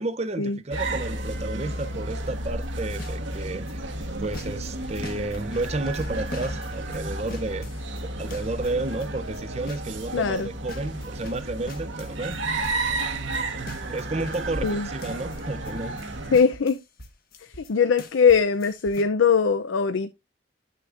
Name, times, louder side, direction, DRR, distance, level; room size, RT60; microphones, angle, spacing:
voice 1, 0.0-3.9 4.2-7.7 8.2-12.4 13.9-16.3, right 2 dB, 30° right, 0.6 m, -31 dB
sound 1, 0.7-16.4, right 2 dB, 75° right, 1.2 m, -32 dB
sound 2, 2.6-3.7 4.0-10.1 10.4-17.7 18.0-19.0, left 1 dB, 50° left, 1.2 m, -43 dB
voice 2, 10.1-10.5 14.6-14.9 16.3-16.8 17.7-20.1, left 6 dB, 75° left, 0.5 m, -21 dB
10.0 x 6.5 x 2.5 m
head